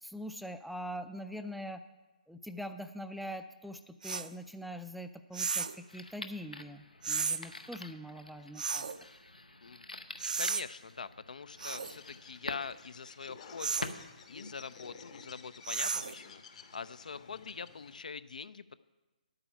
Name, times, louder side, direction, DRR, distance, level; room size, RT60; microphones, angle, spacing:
voice 1, 0.0-1.8 2.3-8.8, equal, ahead, 9 dB, 0.3 m, -43 dB
sound 1, 4.0-4.3 5.3-5.8 7.0-7.4 8.6-9.0 10.2-10.6 11.6-12.0 13.6-13.9 15.6-16.2, right 5 dB, 65° right, 0.5 m, -34 dB
sound 2, 5.9-14.9, left 2 dB, 90° left, 0.7 m, -47 dB
voice 2, 10.4-18.8, left 5 dB, 70° left, 17 dB, 0.4 m, -44 dB
Bird, 11.5-18.1, left 5 dB, 50° left, 1.1 m, -53 dB
10.5 x 8.8 x 5.7 m, 1.2 s
figure-of-eight pair, 135°, 4 cm